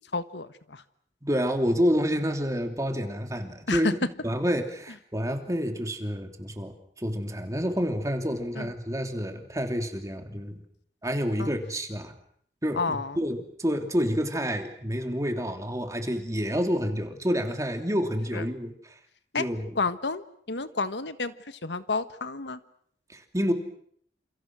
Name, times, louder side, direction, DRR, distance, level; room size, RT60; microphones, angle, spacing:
voice 1, 0.1-0.8 3.7-3.9 8.6-8.7 11.4-11.5 12.8-13.2 18.3-18.4 19.3-19.4 19.7-22.6, left 3 dB, 85° left, 12 dB, 1.5 m, -30 dB
voice 2, 1.2-3.9 4.2-10.6 11.0-12.1 12.6-18.9 19.4-19.8 23.1-23.5, equal, 20° right, 5 dB, 3.1 m, -28 dB
29.5 x 28.0 x 6.3 m, 0.66 s
head